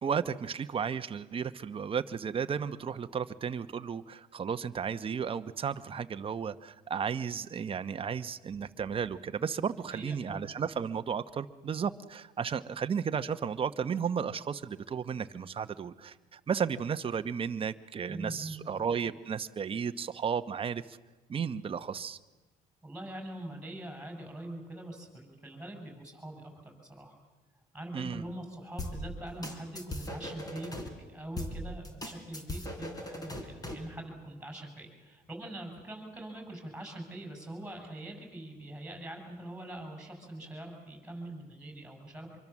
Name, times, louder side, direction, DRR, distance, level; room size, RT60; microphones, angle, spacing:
voice 1, 0.0-21.0 21.3-22.2 27.9-28.2, right 7 dB, 35° right, 10 dB, 0.9 m, -34 dB
voice 2, 9.9-10.4 18.1-18.6 22.8-27.2 27.7-30.7 31.1-42.4, right 1 dB, 5° right, 3 dB, 7.0 m, -43 dB
sound 1, 28.8-30.9 31.4-33.9, left 1 dB, 20° left, 3.7 m, -39 dB
25.5 x 23.5 x 7.3 m, 1.2 s
cardioid pair, 110°, 17 cm